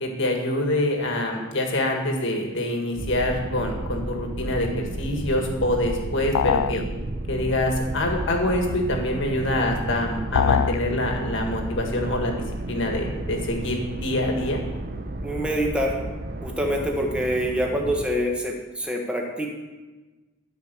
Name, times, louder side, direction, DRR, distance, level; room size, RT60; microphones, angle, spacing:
voice 1, 0.0-6.8 7.3-12.3 12.7-14.6, left 1 dB, 60° left, 2 dB, 1.8 m, -25 dB
sound 1, 2.9-18.1, right 1 dB, 45° right, 0.8 m, -32 dB
sound 2, 6.3-6.8 10.3-10.8, left 8 dB, 75° left, 0.3 m, -22 dB
voice 2, 15.2-16.0 16.4-19.5, equal, 5° right, 0 dB, 1.4 m, -25 dB
12.5 x 5.2 x 6.7 m, 1.2 s
head